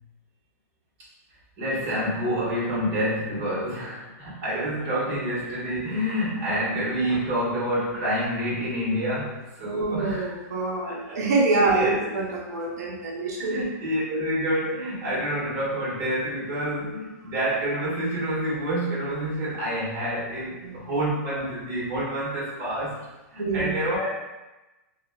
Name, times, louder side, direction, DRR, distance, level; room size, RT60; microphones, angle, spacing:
voice 1, 1.6-10.3 10.9-11.2 11.6-12.1 13.4-23.0 23.3-24.1, equal, 40° right, -7 dB, 1.3 m, -28 dB
voice 2, 9.6-13.6 20.6-20.8 23.4-23.7, right 3 dB, 90° right, -2 dB, 0.5 m, -25 dB
3.0 x 2.1 x 2.2 m, 1.1 s
hypercardioid pair, 140°, 9 cm